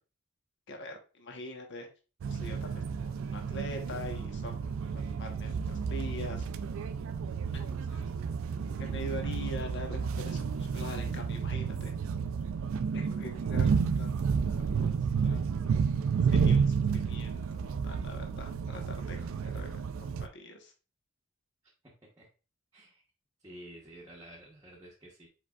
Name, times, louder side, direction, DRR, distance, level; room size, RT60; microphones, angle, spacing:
voice 1, 0.7-1.9 2.3-4.5 4.8-6.5 7.5-8.1 8.6-12.0 12.9-13.7 14.0-14.1 14.5-15.7 16.2-20.7, left 1 dB, 60° left, 3 dB, 1.0 m, -44 dB
sound 1, 2.2-20.3, right 6 dB, 70° right, 0.3 m, -31 dB
voice 2, 21.8-22.3 22.7-23.0 23.4-25.3, right 1 dB, 15° right, -4 dB, 0.9 m, -51 dB
4.9 x 4.6 x 2.3 m, 0.34 s
head